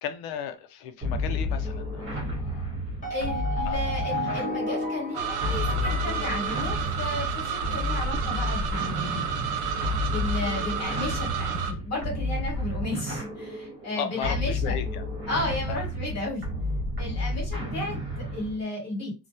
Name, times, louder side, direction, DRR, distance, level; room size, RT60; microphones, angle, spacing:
voice 1, 0.0-2.8 3.7-3.8 7.6-7.8 14.0-15.1 15.7-15.8 17.2-17.4, left 8 dB, 90° left, 0.6 m, -36 dB
sound 1, 1.0-18.6, left 1 dB, 35° right, 1.2 m, -31 dB
sound 2, 3.0-7.3, left 1 dB, 20° left, 1.0 m, -33 dB
voice 2, 3.1-9.3 10.1-14.8 15.3-16.4 17.0-19.1, left 2 dB, 45° left, 1.3 m, -34 dB
sound 3, 5.1-11.7, right 7 dB, 80° right, 0.6 m, -31 dB
2.3 x 2.2 x 2.7 m
cardioid pair, 135°, 37 cm